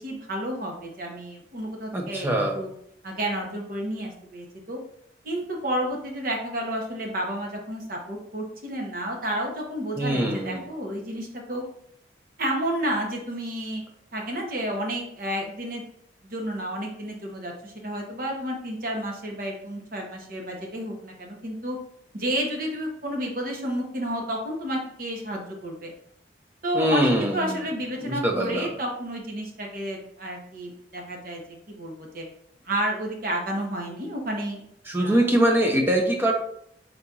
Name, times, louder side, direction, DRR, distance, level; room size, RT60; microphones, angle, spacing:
voice 1, 0.0-2.3 2.5-2.7 3.0-4.8 5.2-11.6 12.4-13.8 14.1-15.8 16.2-21.8 22.1-25.9 26.6-31.4 31.7-32.2 32.6-34.7 35.0-35.2, right 1 dB, 50° right, 1 dB, 0.9 m, -31 dB
voice 2, 1.9-2.6 10.0-10.6 26.7-27.6 28.0-28.7 34.9-36.3, right 1 dB, 10° right, 1 dB, 0.6 m, -23 dB
4.3 x 3.8 x 2.4 m, 0.71 s
head